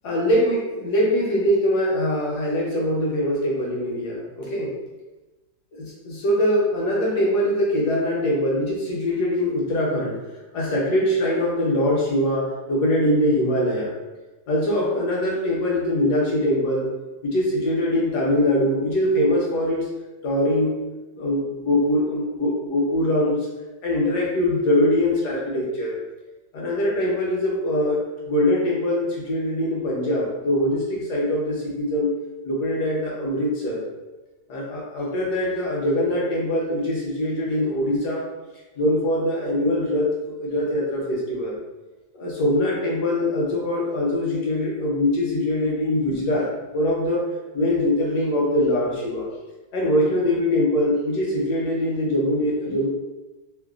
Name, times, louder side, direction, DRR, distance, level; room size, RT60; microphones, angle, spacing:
voice 1, 0.0-4.8 5.7-10.2 10.5-13.9 14.5-16.9 17.2-19.8 20.2-20.8 21.2-23.5 23.8-26.0 26.5-28.0 28.3-32.1 32.4-33.8 34.5-38.2 38.8-40.1 40.4-41.6 42.1-46.5 46.7-47.3 47.5-49.3 49.7-52.9, left 1 dB, 70° left, -3 dB, 1.2 m, -22 dB
3.1 x 2.1 x 2.3 m, 1.1 s
omnidirectional pair, 2.0 m